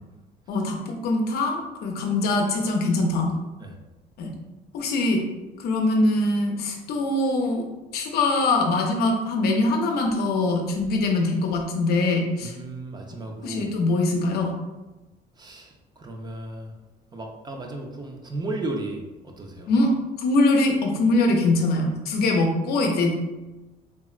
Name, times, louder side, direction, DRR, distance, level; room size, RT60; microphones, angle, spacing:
voice 1, 0.5-3.4 4.2-4.3 4.7-5.2 5.6-7.6 7.9-12.5 13.4-14.5 19.7-19.9 20.2-23.1, left 2 dB, 70° left, 2 dB, 0.5 m, -23 dB
voice 2, 12.4-13.7 15.4-16.7 17.1-19.7, right 2 dB, 25° right, 2 dB, 0.4 m, -35 dB
3.4 x 2.0 x 2.4 m, 1.1 s
cardioid pair, 110°, 17 cm